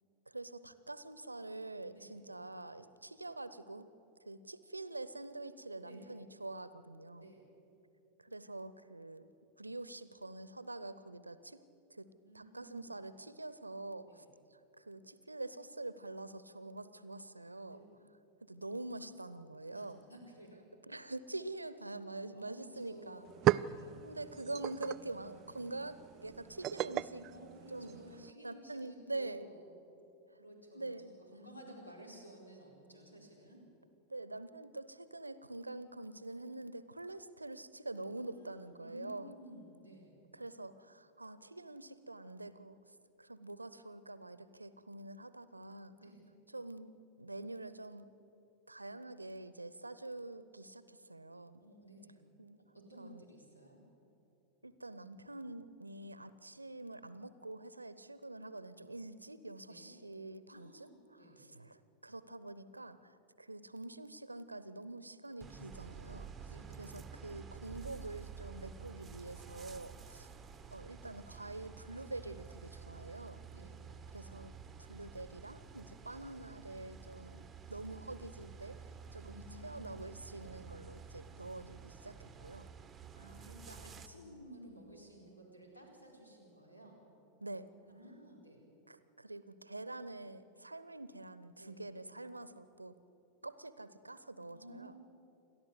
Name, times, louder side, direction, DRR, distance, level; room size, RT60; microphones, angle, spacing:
voice 1, 0.3-3.9 4.2-7.3 8.2-9.3 9.6-11.6 11.9-12.1 12.3-14.2 14.5-17.8 18.4-20.0 20.9-23.3 24.0-27.3 27.7-29.5 30.7-31.1 34.1-39.3 40.3-42.8 43.2-45.9 46.5-48.1 48.7-51.6 52.4-52.6 53.0-53.2 54.6-66.3 66.8-70.3 70.7-73.4 74.1-74.5 74.9-78.8 79.1-82.7 87.4-87.7 88.9-92.9 93.4-94.9, right 2 dB, 85° right, 15 dB, 0.8 m, -46 dB
voice 2, 12.2-13.0 14.1-14.3 17.6-18.0 19.7-20.7 22.3-24.0 27.3-29.8 30.4-33.6 38.2-40.2 46.0-46.2 51.6-52.2 52.7-53.8 59.6-59.9 60.5-61.4 66.5-66.8 73.5-73.8 79.2-79.9 83.1-87.0 87.8-88.6 91.6-91.8 94.5-95.0, right 1 dB, 85° left, 0 dB, 4.6 m, -55 dB
sound 1, 22.7-22.8 23.1-28.3, right 14 dB, 35° right, 0.4 m, -37 dB
sound 2, 65.4-84.1, right 6 dB, 15° right, 1.1 m, -51 dB
29.0 x 12.5 x 8.2 m, 2.9 s
figure-of-eight pair, 90°, 0 cm